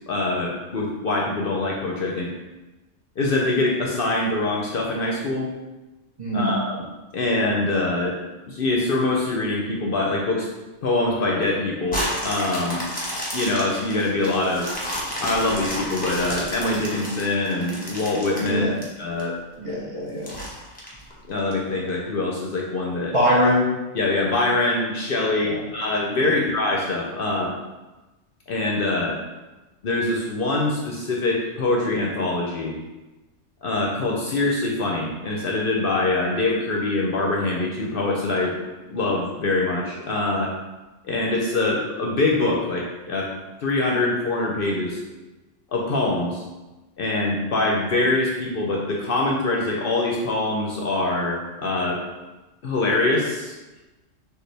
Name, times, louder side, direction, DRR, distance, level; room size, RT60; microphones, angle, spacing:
voice 1, 0.1-2.3 3.2-5.5 6.3-6.8 7.1-8.2 8.5-10.5 10.8-12.8 13.3-14.7 15.2-19.3 21.3-23.1 23.9-27.5 28.5-29.2 29.8-32.7 33.6-38.5 38.9-40.5 41.0-43.3 43.6-45.0 45.7-46.4 47.0-52.0 52.6-53.6, left 2 dB, 60° left, -1 dB, 0.7 m, -24 dB
voice 2, 6.2-6.6 18.5-18.7 19.6-20.3 23.1-23.7 25.4-25.6, equal, 35° right, -6 dB, 0.6 m, -22 dB
sound 1, 11.9-19.2 19.7-19.8 20.2-21.5 22.1-22.2, equal, 10° left, 0.9 m, -31 dB
6.4 x 2.4 x 3.2 m, 1.1 s
omnidirectional pair, 1.3 m